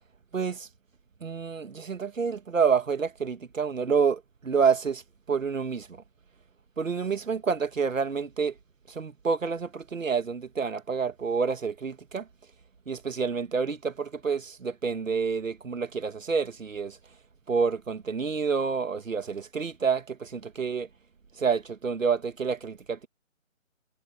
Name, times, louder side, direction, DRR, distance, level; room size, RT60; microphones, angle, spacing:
voice 1, 0.3-0.7 1.2-5.0 5.3-5.9 6.8-8.5 8.9-12.3 12.9-17.0 17.5-20.9 21.4-23.1, right 5 dB, 70° right, 2.2 m, -28 dB
hypercardioid pair, 180°, 41 cm